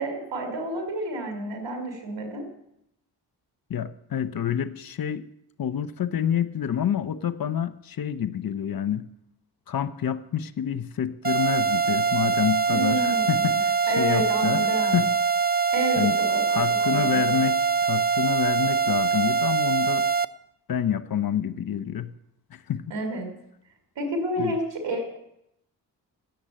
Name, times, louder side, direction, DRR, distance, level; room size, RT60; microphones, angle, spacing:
voice 1, 0.0-2.4 12.7-13.6 13.9-15.0 15.7-16.4 16.7-17.3 22.9-23.3 24.0-25.2, right 1 dB, 75° right, 5 dB, 3.3 m, -30 dB
voice 2, 3.7-5.3 5.6-9.0 9.7-15.1 16.0-16.2 16.5-20.1 20.7-22.1 22.5-22.8 24.4-24.5, left 9 dB, 50° left, 13 dB, 0.9 m, -28 dB
sound 1, 11.2-20.3, right 5 dB, 20° right, 0.5 m, -23 dB
10.5 x 8.0 x 8.8 m, 0.79 s
supercardioid pair, 50°, 44 cm